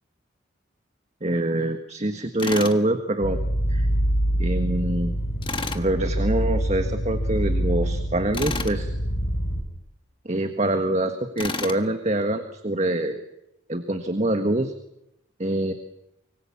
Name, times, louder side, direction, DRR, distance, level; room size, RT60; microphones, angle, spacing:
voice 1, 1.2-3.4 3.7-3.9 4.4-5.1 5.7-8.9 10.2-13.2 13.7-14.7 15.4-15.7, right 1 dB, 35° right, 7 dB, 1.6 m, -25 dB
Tools, 2.4-2.8 5.4-5.8 8.3-8.8 11.4-11.8, left 4 dB, 25° left, 1.5 m, -30 dB
sound 1, 3.2-9.6, right 1 dB, 80° left, 5.6 m, -25 dB
25.5 x 24.0 x 7.2 m, 0.83 s
head